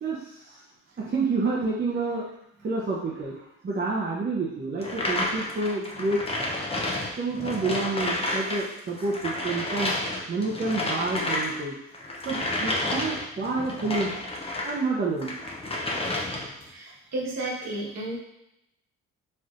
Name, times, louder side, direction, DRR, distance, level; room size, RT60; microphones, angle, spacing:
voice 1, 0.0-0.6 1.0-2.3 2.6-6.2 7.2-9.9 10.3-11.7 12.2-14.1 14.6-15.4, right 3 dB, 35° right, -5 dB, 0.8 m, -29 dB
sound 1, 4.8-14.8 15.2-16.6, left 1 dB, 20° left, 0.8 m, -30 dB
voice 2, 16.6-18.2, right 1 dB, 60° right, -5 dB, 1.5 m, -32 dB
4.3 x 3.3 x 2.5 m, 0.82 s
cardioid pair, 90°, 30 cm